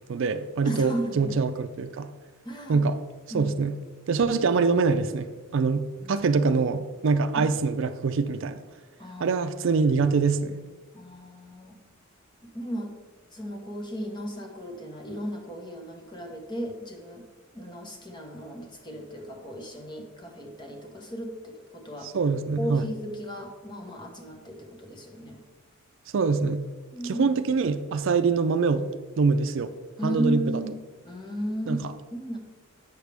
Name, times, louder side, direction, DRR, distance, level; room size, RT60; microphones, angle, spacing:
voice 1, 0.1-2.1 2.7-3.0 3.3-3.8 4.1-5.3 5.5-8.6 9.2-10.6 22.0-22.9 26.1-26.6 27.0-28.9 29.2-29.7 30.0-30.6 31.7-31.8, right 4 dB, 65° right, 11 dB, 0.4 m, -24 dB
voice 2, 0.6-1.3 2.4-2.8 3.3-3.5 6.0-6.3 9.0-9.4 10.9-11.8 12.4-12.9 13.3-17.2 17.5-22.1 22.6-25.4 26.9-27.3 30.0-30.7 31.0-32.4, equal, 20° left, 2 dB, 1.1 m, -35 dB
8.0 x 6.6 x 3.4 m, 1.4 s
head